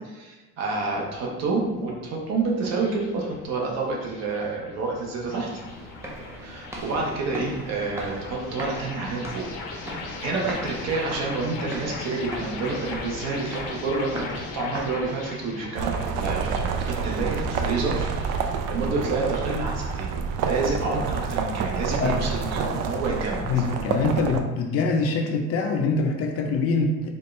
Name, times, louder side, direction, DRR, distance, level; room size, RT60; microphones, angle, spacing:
voice 1, 0.0-5.5 6.4-18.1 18.7-20.1 20.4-23.5, right 3 dB, 55° right, -2 dB, 0.9 m, -29 dB
sound 1, 1.0-19.6, left 3 dB, 85° left, 0.8 m, -39 dB
sound 2, 5.5-15.5, right 1 dB, 10° right, 0.3 m, -39 dB
sound 3, 15.8-24.4, right 5 dB, 80° right, 0.5 m, -28 dB
voice 2, 23.5-27.1, left 3 dB, 50° left, 3 dB, 0.5 m, -24 dB
4.4 x 2.4 x 3.2 m, 1.2 s
cardioid pair, 165°, 31 cm